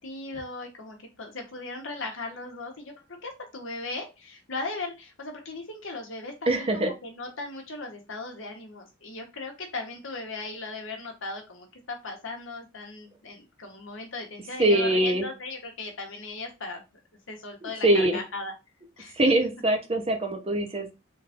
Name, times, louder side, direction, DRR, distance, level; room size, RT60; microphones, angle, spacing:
voice 1, 0.0-2.9 3.2-16.8 17.3-18.5 19.0-19.2, left 3 dB, 65° left, 2 dB, 1.2 m, -37 dB
voice 2, 6.5-6.9 14.6-15.3 17.6-18.2 19.1-20.9, right 1 dB, 30° right, 4 dB, 0.8 m, -23 dB
3.8 x 2.6 x 3.5 m, 0.26 s
head